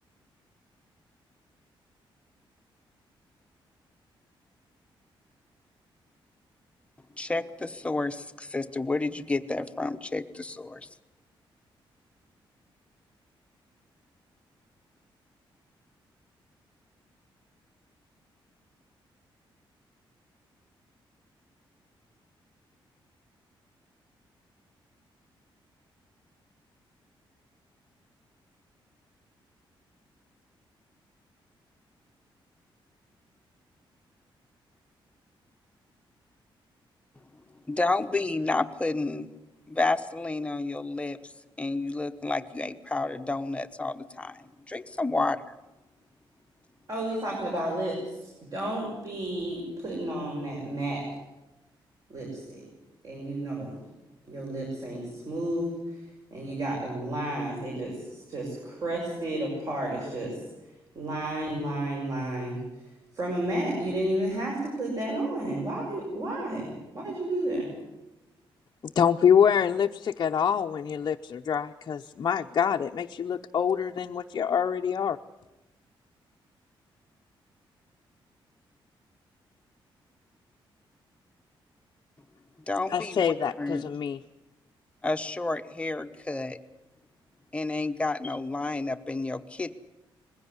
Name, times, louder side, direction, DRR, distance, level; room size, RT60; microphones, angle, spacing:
voice 1, 7.2-10.9 37.7-39.3 39.7-41.2 41.6-45.4 82.7-83.9 85.0-86.6 87.5-89.7, left 3 dB, 15° left, 8 dB, 1.0 m, -30 dB
voice 2, 46.9-51.0 52.1-52.6 53.0-53.8 54.3-55.7 56.3-60.3 60.9-62.6 63.1-67.7, right 1 dB, 40° right, -2 dB, 6.8 m, -32 dB
voice 3, 68.9-75.2 82.9-84.2, left 8 dB, 45° left, 3 dB, 0.7 m, -25 dB
21.0 x 16.0 x 9.8 m, 1.0 s
wide cardioid pair, 165°, 9 cm